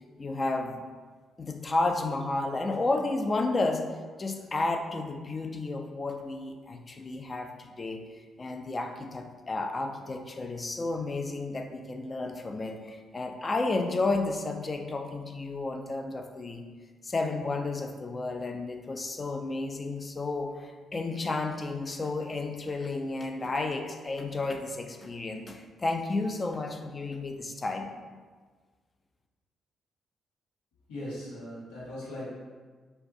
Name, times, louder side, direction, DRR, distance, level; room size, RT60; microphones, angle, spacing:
voice 1, 0.2-0.8 1.4-3.9 4.2-8.0 8.4-16.7 17.0-27.9, left 3 dB, 35° left, 5 dB, 0.4 m, -32 dB
voice 2, 30.9-32.4, left 1 dB, 75° left, -7 dB, 0.9 m, -39 dB
4.3 x 2.1 x 2.6 m, 1.4 s
hypercardioid pair, 40°, 0 cm